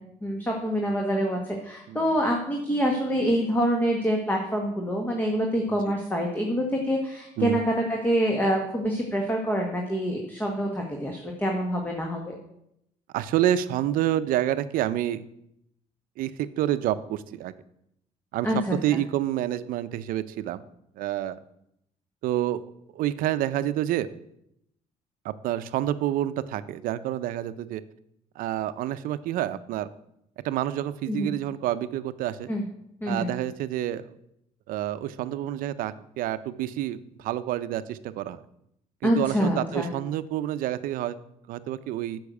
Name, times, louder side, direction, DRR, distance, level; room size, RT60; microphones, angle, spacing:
voice 1, 0.2-12.4 18.4-19.0 31.1-31.3 32.5-32.6 33.0-33.3 39.0-39.9, equal, 15° left, 1 dB, 1.6 m, -26 dB
voice 2, 13.1-15.2 16.2-17.5 18.3-20.6 20.9-21.4 22.2-22.7 22.9-24.1 25.2-27.8 28.4-29.9 30.4-32.5 33.1-34.1 34.7-38.4 39.0-41.2 41.5-42.2, right 12 dB, 80° right, 13 dB, 0.6 m, -28 dB
8.4 x 6.3 x 8.2 m, 0.78 s
cardioid pair, 110°, 14 cm